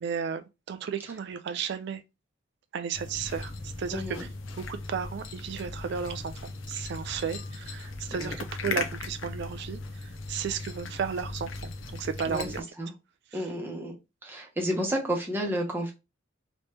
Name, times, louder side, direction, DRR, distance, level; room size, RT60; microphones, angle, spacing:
voice 1, 0.0-2.0 2.7-4.3 4.7-12.6 13.3-13.4, right 7 dB, 55° right, 0.3 m, -34 dB
sound 1, 2.9-12.6, left 3 dB, 70° left, 0.6 m, -38 dB
voice 2, 3.9-4.2 8.1-8.3 12.3-12.5 12.8-12.9 13.3-13.9 14.2-15.9, equal, 10° right, 1.0 m, -31 dB
3.1 x 3.0 x 3.2 m
head